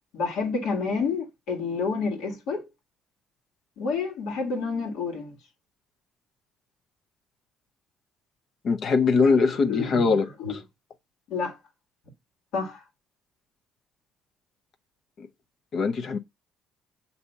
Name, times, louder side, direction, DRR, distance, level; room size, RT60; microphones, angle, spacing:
voice 1, 0.1-2.7 3.8-5.4 9.2-10.6 11.3-11.6 12.5-12.8, left 4 dB, 75° left, 1.5 m, -29 dB
voice 2, 8.6-10.2 15.2-15.3 15.7-16.2, left 4 dB, 55° left, 0.6 m, -22 dB
6.7 x 2.7 x 5.5 m
supercardioid pair, 70°, 0 cm